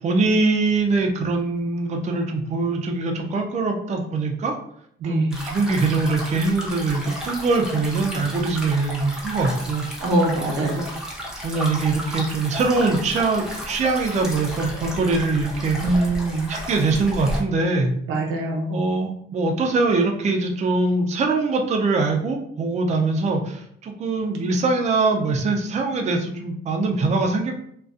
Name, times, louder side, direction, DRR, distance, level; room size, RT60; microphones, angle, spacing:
voice 1, 0.0-4.5 5.0-9.8 11.4-16.1 16.5-17.9 18.7-27.6, right 3 dB, 35° right, 2 dB, 0.4 m, -23 dB
voice 2, 5.0-5.4 10.0-10.9 15.8-16.5 18.1-18.8, right 1 dB, 90° right, 0 dB, 0.7 m, -23 dB
sound 1, 5.3-17.4, equal, 5° right, 0.8 m, -33 dB
2.5 x 2.2 x 2.4 m, 0.69 s
cardioid pair, 90°, 20 cm